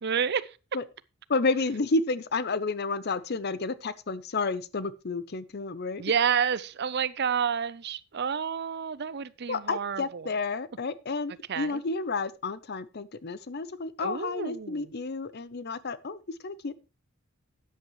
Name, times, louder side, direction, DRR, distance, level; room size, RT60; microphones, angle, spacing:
voice 1, 0.0-0.5 6.0-10.3 11.5-11.8 14.0-14.9, right 7 dB, 50° right, 0.6 m, -29 dB
voice 2, 1.3-6.0 9.5-16.7, left 3 dB, 50° left, 0.7 m, -31 dB
13.5 x 9.6 x 3.1 m
head